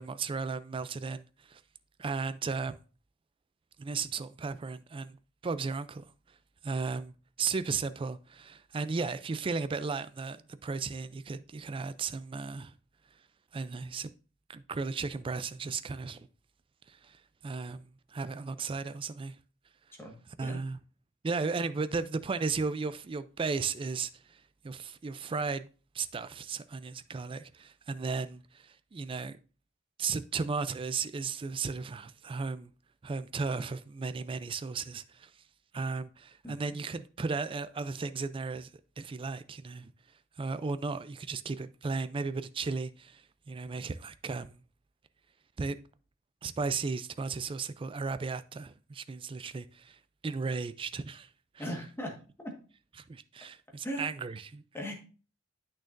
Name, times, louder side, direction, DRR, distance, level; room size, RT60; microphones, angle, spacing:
voice 1, 0.0-1.6 2.0-2.8 3.8-5.2 5.4-6.1 6.6-12.7 13.5-14.1 14.5-16.3 16.9-19.4 20.4-20.8 21.2-25.7 25.9-29.4 30.0-32.7 33.0-35.3 35.7-38.7 39.0-39.9 40.4-44.6 45.6-45.8 46.4-51.3 51.5-51.6 53.1-54.6, right 4 dB, 25° right, 0.3 m, -35 dB
voice 2, 20.0-20.6 36.4-36.5 51.6-52.1 52.4-52.5 53.8-54.1 54.7-54.9, equal, 10° left, 1.5 m, -38 dB
8.6 x 6.4 x 2.5 m
head